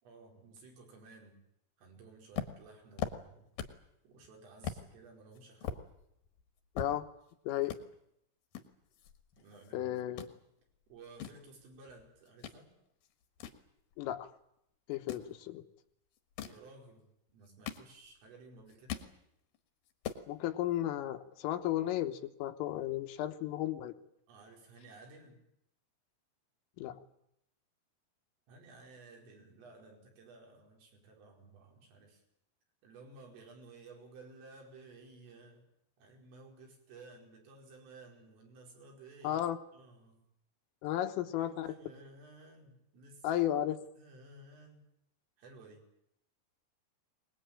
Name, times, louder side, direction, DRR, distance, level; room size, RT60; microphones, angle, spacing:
voice 1, 0.0-1.4 1.8-3.5 4.0-5.8 9.4-9.9 10.9-12.7 16.4-19.1 24.3-25.4 28.5-32.2 32.8-35.6 36.0-39.4 39.7-40.2 40.9-43.4 44.0-44.9 45.4-45.8, right 3 dB, 75° right, 0 dB, 7.7 m, -55 dB
sound 1, 2.3-3.9 4.2-4.3 4.6-4.8 5.3-7.3 7.6-7.8 8.5-9.7 10.0-10.3 10.9-12.6 13.0-14.3 14.9-15.3 16.2-16.7 17.3-18.3 18.6-19.1 19.5-19.6 19.9-20.3, left 8 dB, 65° left, 2.5 m, -41 dB
voice 2, 6.8-7.1 7.5-7.8 9.7-10.2 14.0-14.3 14.9-15.6 20.3-23.9 26.8-27.0 39.2-39.6 40.8-41.8 43.2-43.8, left 12 dB, 85° left, 7 dB, 3.8 m, -34 dB
23.0 x 20.5 x 9.0 m, 0.76 s
omnidirectional pair, 5.8 m